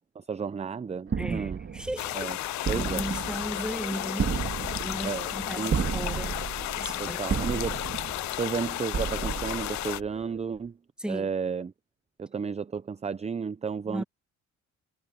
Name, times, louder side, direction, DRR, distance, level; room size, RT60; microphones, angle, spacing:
voice 1, 0.2-1.6 2.1-2.4 2.7-3.0 5.0-5.8 7.0-7.8 8.4-10.8 11.1-11.7 12.2-14.0, right 6 dB, 20° right, 0.5 m, -32 dB
sound 1, 1.1-10.4, right 6 dB, 45° right, 2.9 m, -33 dB
voice 2, 1.2-4.3 4.7-6.4 6.8-7.3 11.0-11.3 13.9-14.0, right 1 dB, 5° right, 1.4 m, -36 dB
sound 2, 2.0-10.0, left 17 dB, 70° left, 0.4 m, -33 dB
cardioid pair, 90°, 30 cm